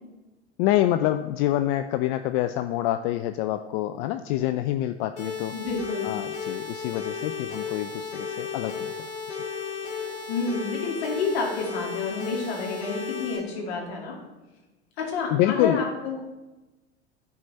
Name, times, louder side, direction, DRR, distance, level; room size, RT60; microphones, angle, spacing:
voice 1, 0.6-5.6 6.0-8.9 9.3-9.4 15.3-15.8, left 13 dB, 45° left, 9 dB, 0.4 m, -26 dB
sound 1, 5.2-13.4, left 6 dB, 85° left, 2.7 m, -34 dB
voice 2, 5.5-6.1 10.3-14.2 15.0-16.2, left 4 dB, 65° left, -1 dB, 2.2 m, -29 dB
10.5 x 4.4 x 4.1 m, 1.1 s
hypercardioid pair, 85°, 34 cm